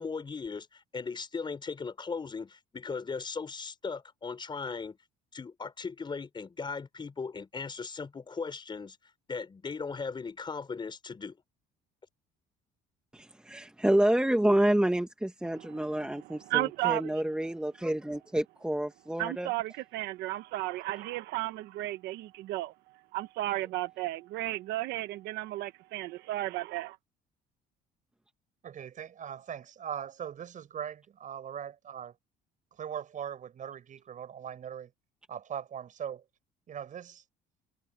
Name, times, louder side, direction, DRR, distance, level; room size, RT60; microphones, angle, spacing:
voice 1, 0.0-5.0 5.3-9.0 9.3-11.4, left 5 dB, 25° left, 5.1 m, -38 dB
voice 2, 13.1-19.5, right 1 dB, 5° right, 1.6 m, -28 dB
voice 3, 16.5-17.1 19.2-22.7 23.1-27.0, right 17 dB, 85° right, 1.1 m, -33 dB
voice 4, 28.6-32.1 32.7-34.9 35.3-36.2 36.7-37.2, right 8 dB, 50° right, 5.8 m, -40 dB
cardioid pair, 110°, 17 cm